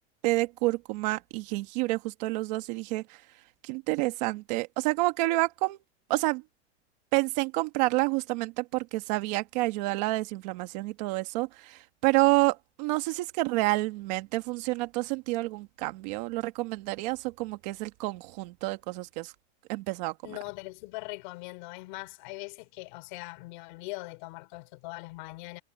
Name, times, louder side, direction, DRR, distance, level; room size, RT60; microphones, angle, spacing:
voice 1, 0.2-3.2 3.6-5.8 6.1-6.4 7.1-19.3 19.7-20.1, right 21 dB, 40° right, 1.8 m, -29 dB
voice 2, 20.2-25.6, left 23 dB, 45° left, 3.2 m, -41 dB
supercardioid pair, 180°, 34 cm